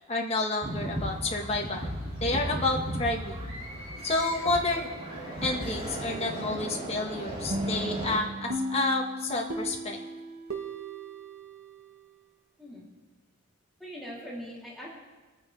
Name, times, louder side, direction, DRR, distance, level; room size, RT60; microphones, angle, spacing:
voice 1, 0.1-1.9 2.2-3.5 4.0-4.9 5.4-10.0, left 2 dB, 30° left, -1 dB, 1.5 m, -30 dB
sound 1, 0.6-8.2, equal, 25° right, 2.4 m, -36 dB
sound 2, 7.5-12.2, right 1 dB, 75° right, 1.3 m, -36 dB
voice 2, 13.8-14.9, equal, ahead, -7 dB, 3.2 m, -41 dB
23.5 x 9.3 x 3.4 m, 1.2 s
head